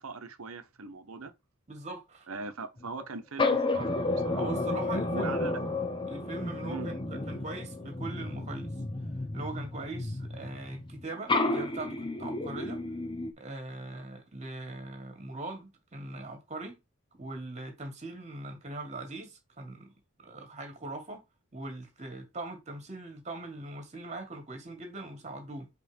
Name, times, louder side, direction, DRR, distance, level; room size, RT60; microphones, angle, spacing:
voice 1, 0.0-1.3 2.3-3.9 4.2-4.4 5.1-5.6 6.7-6.9, right 4 dB, 80° right, 1.0 m, -40 dB
voice 2, 1.7-2.3 4.4-5.4 6.1-8.7 9.3-12.8 13.4-16.8 17.1-19.9 20.2-21.2 21.5-25.7, right 2 dB, 30° right, 1.9 m, -41 dB
sound 1, 2.8-3.0 3.4-11.0 11.3-13.3, left 2 dB, 20° left, 0.8 m, -32 dB
5.0 x 3.8 x 5.1 m
head